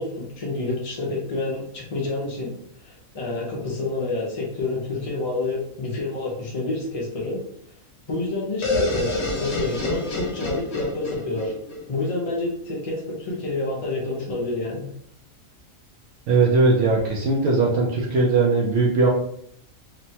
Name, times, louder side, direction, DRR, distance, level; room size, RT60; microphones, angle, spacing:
voice 1, 0.0-2.5 2.8-7.4 8.1-11.5 11.9-14.9, left 2 dB, 45° left, -3 dB, 0.4 m, -28 dB
sound 1, 8.6-12.4, left 2 dB, 60° left, 0.9 m, -28 dB
voice 2, 16.3-19.1, right 3 dB, 70° right, -2 dB, 0.8 m, -19 dB
3.1 x 2.1 x 2.8 m, 0.66 s
omnidirectional pair, 1.5 m